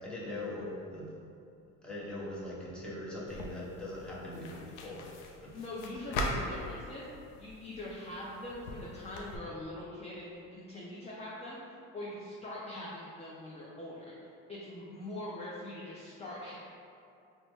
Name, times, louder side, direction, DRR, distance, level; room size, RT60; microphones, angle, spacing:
voice 1, 0.0-1.1 1.8-5.0 5.4-5.5 6.0-6.3, left 1 dB, ahead, -7 dB, 1.0 m, -41 dB
sound 1, 3.3-9.4, left 1 dB, 70° left, 0.6 m, -41 dB
voice 2, 5.5-7.0 7.4-14.0 14.5-16.6, left 1 dB, 15° left, -6 dB, 0.5 m, -43 dB
4.0 x 2.2 x 3.0 m, 2.5 s
hypercardioid pair, 70°, 39 cm